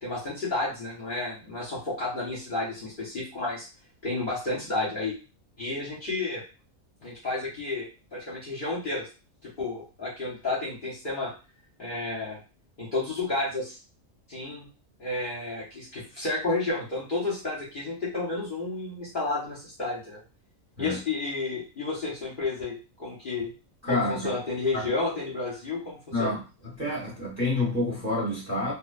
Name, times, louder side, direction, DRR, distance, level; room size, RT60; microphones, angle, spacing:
voice 1, 0.0-3.7 4.0-5.2 5.6-6.4 7.0-7.9 8.1-9.1 9.4-11.3 11.8-12.4 12.8-13.8 14.3-14.7 15.0-20.2 20.8-23.5 23.9-26.4, left 3 dB, 45° left, -6 dB, 0.8 m, -31 dB
voice 2, 23.8-24.3 24.7-24.9 26.1-26.4 26.8-28.7, left 2 dB, 15° right, -6 dB, 0.9 m, -28 dB
2.5 x 2.1 x 2.4 m, 0.32 s
omnidirectional pair, 1.4 m